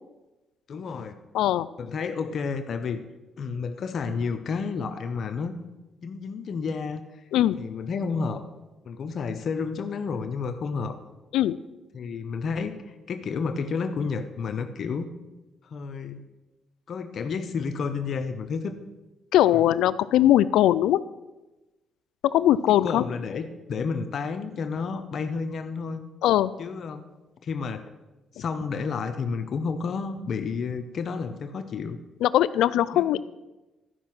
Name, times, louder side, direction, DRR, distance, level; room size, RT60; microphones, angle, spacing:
voice 1, 0.7-1.2 1.8-3.0 3.4-5.5 6.0-7.1 7.6-8.4 8.9-11.0 11.9-15.1 15.6-16.2 16.9-18.8 19.5-19.6 22.8-26.0 26.6-27.0 27.4-27.9 28.3-32.0 32.9-33.1, left 5 dB, 55° left, 8 dB, 0.7 m, -31 dB
voice 2, 1.3-1.7 7.3-7.6 11.3-11.6 19.3-21.0 22.2-23.0 26.2-26.5 32.2-33.2, left 12 dB, 85° left, 17 dB, 0.3 m, -20 dB
12.5 x 5.5 x 6.0 m, 1.1 s
cardioid pair, 90°, 0 cm